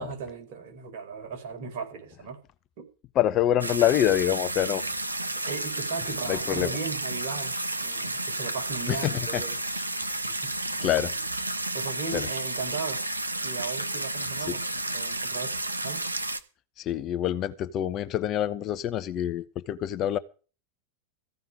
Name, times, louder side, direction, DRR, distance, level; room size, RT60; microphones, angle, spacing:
voice 1, 0.0-2.4 2.8-2.9 5.4-9.6 10.0-10.5 11.7-13.0 13.4-15.5 15.8-16.1, right 5 dB, 50° right, 4.5 m, -37 dB
voice 2, 3.1-4.8 6.3-6.7 8.9-9.4 10.8-11.1 12.1-12.3 14.5-14.6 16.8-20.2, left 11 dB, 35° left, 0.8 m, -26 dB
sound 1, 3.6-16.4, right 2 dB, 85° right, 1.0 m, -32 dB
15.0 x 5.6 x 9.1 m
figure-of-eight pair, 90°, 0 cm